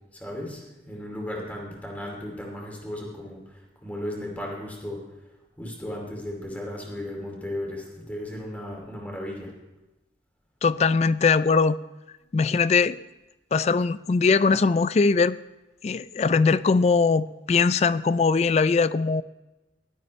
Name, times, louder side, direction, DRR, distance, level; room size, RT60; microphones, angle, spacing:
voice 1, 0.1-3.4 3.8-5.0 5.6-9.5, left 1 dB, 10° left, -1 dB, 2.6 m, -35 dB
voice 2, 10.6-11.8 12.3-13.0 13.5-15.4 15.8-19.2, left 4 dB, 35° left, 17 dB, 0.3 m, -21 dB
16.5 x 12.0 x 3.2 m, 1.0 s
head